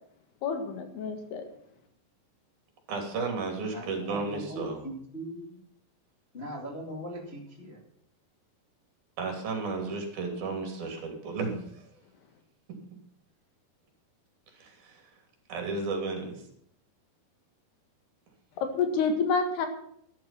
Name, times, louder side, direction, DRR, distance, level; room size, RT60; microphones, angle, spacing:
voice 1, 0.4-1.4 18.6-19.7, left 5 dB, 75° left, 6 dB, 3.8 m, -28 dB
voice 2, 2.9-4.8 9.2-12.0 14.5-15.1 15.5-16.5, right 4 dB, 60° right, 3 dB, 4.8 m, -33 dB
voice 3, 3.7-5.6 6.3-7.8, equal, 20° left, -1 dB, 1.7 m, -40 dB
12.5 x 12.5 x 5.9 m, 0.68 s
omnidirectional pair, 4.8 m